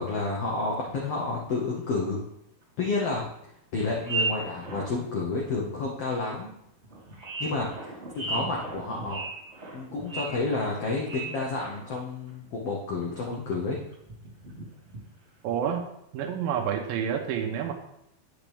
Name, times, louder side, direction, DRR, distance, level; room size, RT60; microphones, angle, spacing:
voice 1, 0.0-2.2 2.8-3.2 3.7-6.5 7.4-7.7 8.1-9.2 9.7-13.8, left 3 dB, 80° left, -2 dB, 1.4 m, -30 dB
sound 1, 1.8-1.9 2.2-2.3 3.2-3.3 3.7-5.1 5.6-5.7 6.4-6.5 6.8-12.0 12.3-12.6 13.0-13.6 13.9-15.1 15.5-15.8, right 3 dB, 25° right, 1.7 m, -36 dB
voice 2, 15.4-15.8 16.1-17.7, right 8 dB, 80° right, 2 dB, 2.4 m, -28 dB
8.8 x 6.0 x 3.4 m, 0.78 s
omnidirectional pair, 4.2 m